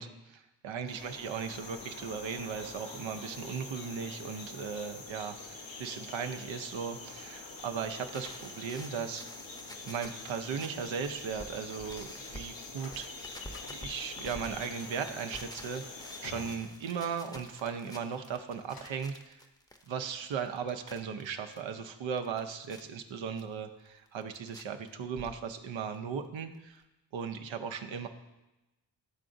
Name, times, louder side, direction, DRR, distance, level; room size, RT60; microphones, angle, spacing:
voice 1, 0.0-9.3 9.8-13.3 13.7-19.4 19.9-26.8 27.1-28.1, right 6 dB, 85° right, 6 dB, 0.6 m, -37 dB
sound 1, 0.9-16.6, left 3 dB, 80° left, 0.9 m, -46 dB
sound 2, 7.8-12.5 12.8-21.6 22.0-22.8 23.4-23.5 23.9-24.6 24.9-25.7 25.9-26.0 26.2-26.3 26.5-26.6, equal, 10° left, 0.6 m, -50 dB
sound 3, 11.4-17.5 17.9-19.2, left 4 dB, 50° left, 0.8 m, -55 dB
11.0 x 3.8 x 2.6 m, 1.0 s
cardioid pair, 40°, 45 cm